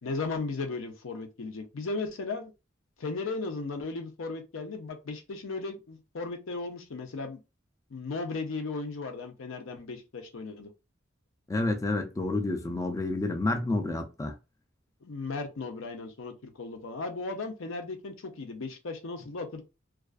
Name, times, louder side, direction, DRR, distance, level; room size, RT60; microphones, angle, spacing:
voice 1, 0.0-2.5 3.0-7.4 7.9-10.7 15.0-19.6, left 3 dB, 85° left, 0.6 m, -36 dB
voice 2, 11.5-14.3, left 2 dB, 15° left, 0.3 m, -29 dB
2.3 x 2.3 x 2.3 m
head